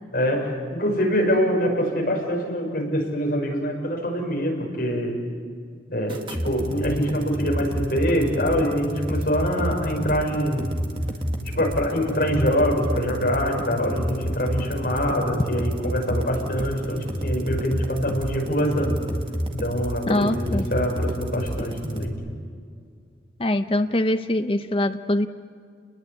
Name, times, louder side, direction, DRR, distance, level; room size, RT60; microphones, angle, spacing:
voice 1, 0.1-5.2 5.9-10.8 11.5-19.0 19.6-22.2, equal, 50° left, 0 dB, 6.1 m, -24 dB
sound 1, 6.1-22.1, equal, 25° right, 1.9 m, -29 dB
voice 2, 20.1-20.7 23.4-25.3, left 1 dB, 30° left, 8 dB, 0.7 m, -23 dB
29.5 x 21.0 x 8.6 m, 2.2 s
head